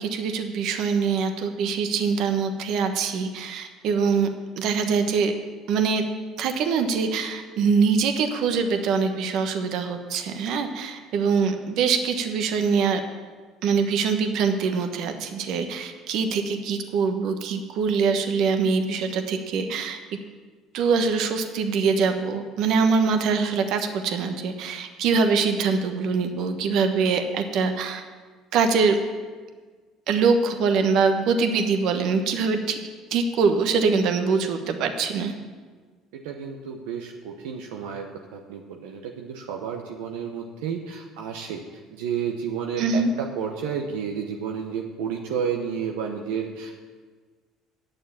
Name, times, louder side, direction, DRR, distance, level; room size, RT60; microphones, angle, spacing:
voice 1, 0.0-4.3 4.6-5.3 5.7-6.0 6.4-13.0 13.6-20.0 20.7-28.0 28.5-29.0 30.1-32.8 33.1-35.3 42.8-43.1, right 5 dB, 70° right, 6 dB, 1.2 m, -23 dB
voice 2, 36.1-41.6 41.9-46.8, right 7 dB, 85° right, 1 dB, 0.9 m, -31 dB
9.1 x 6.8 x 8.7 m, 1.5 s
supercardioid pair, 85°, 0 cm